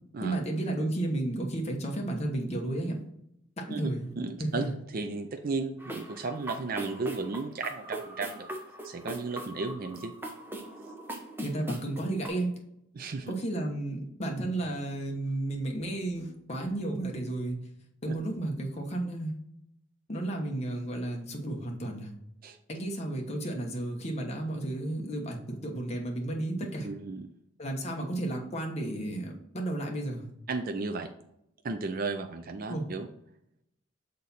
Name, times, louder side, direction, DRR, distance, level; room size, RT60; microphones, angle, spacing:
voice 1, 0.2-3.0 3.6-4.1 4.4-4.7 11.4-12.5 13.3-17.6 18.0-19.3 20.1-22.1 22.7-26.9 27.6-30.3 32.7-32.8, right 1 dB, 30° left, 1 dB, 1.0 m, -32 dB
voice 2, 4.2-8.5 8.8-10.1 12.9-13.3 18.1-18.2 22.4-22.6 26.8-27.3 30.5-31.1 31.6-33.1, right 3 dB, 45° right, 6 dB, 0.4 m, -34 dB
sound 1, 5.8-12.3, right 1 dB, 10° right, 0.8 m, -41 dB
6.5 x 4.1 x 4.1 m, 0.78 s
head